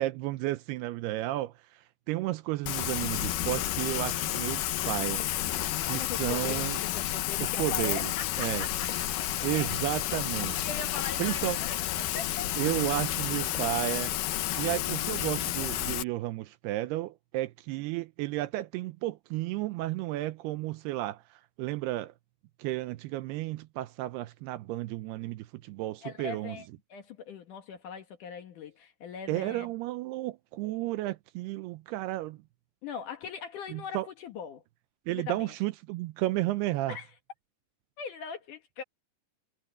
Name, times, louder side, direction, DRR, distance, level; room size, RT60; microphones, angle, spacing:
voice 1, 0.0-5.2 5.8-6.8 7.4-8.1 8.4-8.7 9.4-10.6 11.2-11.6 12.6-14.1 14.5-22.1 22.6-26.6 29.3-32.4 33.7-34.1 35.1-37.0, right 17 dB, 80° right, 2.5 m, -32 dB
Rain, 2.6-16.0, left 14 dB, 80° left, 2.0 m, -31 dB
voice 2, 5.9-9.8 10.6-12.5 26.0-29.7 32.8-34.6 35.1-35.5 36.9-37.1 38.0-38.8, left 6 dB, 60° left, 2.5 m, -41 dB
omnidirectional pair, 4.9 m